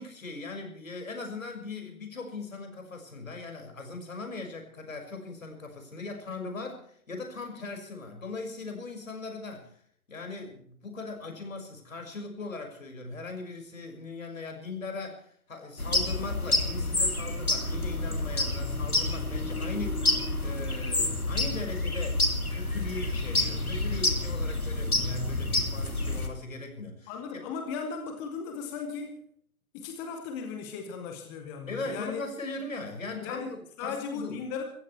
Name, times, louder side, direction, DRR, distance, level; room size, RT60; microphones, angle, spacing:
voice 1, 0.0-9.8 10.1-22.2 22.5-27.2 31.7-34.4, left 3 dB, 65° left, 4 dB, 6.0 m, -39 dB
sound 1, 15.8-26.3, left 2 dB, 85° left, 2.9 m, -28 dB
voice 2, 27.1-29.2 29.7-32.2 33.2-34.6, left 5 dB, 5° left, 5 dB, 0.6 m, -37 dB
25.5 x 15.0 x 3.3 m, 0.62 s
figure-of-eight pair, 130°, 43 cm